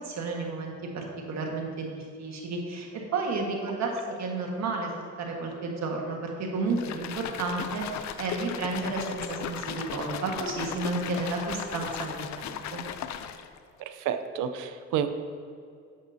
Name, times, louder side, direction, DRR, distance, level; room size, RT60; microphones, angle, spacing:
voice 1, 0.0-3.9 4.2-12.8, right 3 dB, 65° right, 0 dB, 1.6 m, -32 dB
sound 1, 6.7-13.6, left 9 dB, 65° left, 0.5 m, -37 dB
voice 2, 13.9-15.1, right 9 dB, 90° right, 9 dB, 0.6 m, -30 dB
10.5 x 7.2 x 2.7 m, 2.3 s
cardioid pair, 90°, 30 cm